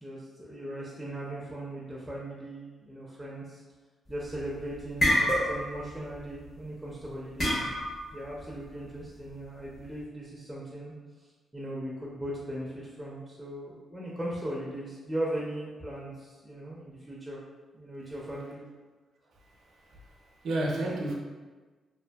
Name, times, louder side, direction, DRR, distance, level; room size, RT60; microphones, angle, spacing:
voice 1, 0.0-3.6 4.1-7.6 8.1-10.9 11.5-17.4 17.7-18.6, right 1 dB, 5° right, -5 dB, 0.4 m, -38 dB
sound 1, 4.1-4.4 4.7-5.8 6.1-6.4 7.4-8.1, equal, 50° left, 1.0 m, -26 dB
voice 2, 19.4-21.1, right 1 dB, 75° right, -1 dB, 0.5 m, -33 dB
2.5 x 2.5 x 2.2 m, 1.3 s
cardioid pair, 95°, 0 cm